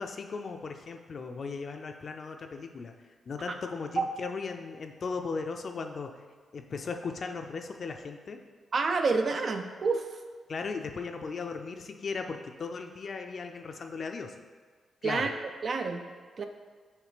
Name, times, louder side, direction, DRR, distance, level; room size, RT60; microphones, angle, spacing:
voice 1, 0.0-2.9 3.3-6.2 6.5-8.4 10.5-14.3 15.0-15.3, left 4 dB, 55° left, 5 dB, 0.5 m, -37 dB
voice 2, 8.7-10.0 15.0-15.3 15.6-16.0 16.4-16.5, right 4 dB, 55° right, 6 dB, 0.5 m, -28 dB
6.4 x 3.2 x 5.0 m, 1.6 s
cardioid pair, 90°, 0 cm